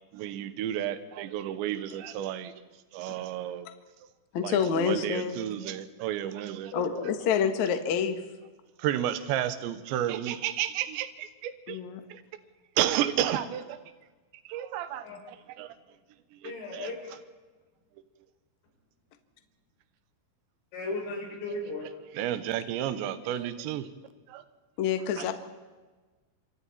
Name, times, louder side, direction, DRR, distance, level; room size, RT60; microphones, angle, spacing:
voice 1, 0.1-2.5 2.9-3.7 4.4-6.7 8.8-11.8 12.1-12.2 12.8-13.8 14.4-15.7 16.3-16.9 22.1-23.9 24.3-24.4 25.2-25.3, right 11 dB, 75° right, 11 dB, 3.2 m, -32 dB
voice 2, 4.3-5.4 6.7-8.2 11.7-12.0 24.8-25.3, left 7 dB, 60° left, 7 dB, 1.9 m, -27 dB
voice 3, 6.7-7.0 15.0-15.2 16.4-16.9 20.7-21.9, left 2 dB, 85° left, -2 dB, 8.4 m, -35 dB
27.0 x 26.0 x 4.3 m, 1.3 s
omnidirectional pair, 5.6 m